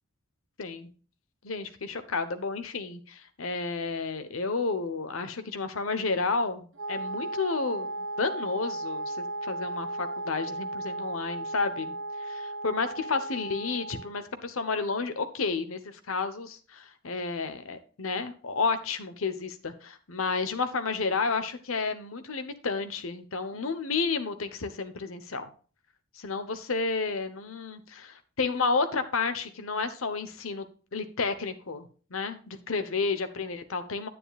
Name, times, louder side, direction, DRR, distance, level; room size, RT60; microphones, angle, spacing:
voice 1, 0.6-0.9 1.4-11.9 12.2-25.5 26.2-30.6 30.9-34.1, left 4 dB, 85° left, 10 dB, 1.0 m, -31 dB
Wind instrument woodwind instrument, 6.8-14.2, right 2 dB, 70° right, 1.5 m, -35 dB
9.8 x 9.4 x 2.4 m, 0.39 s
head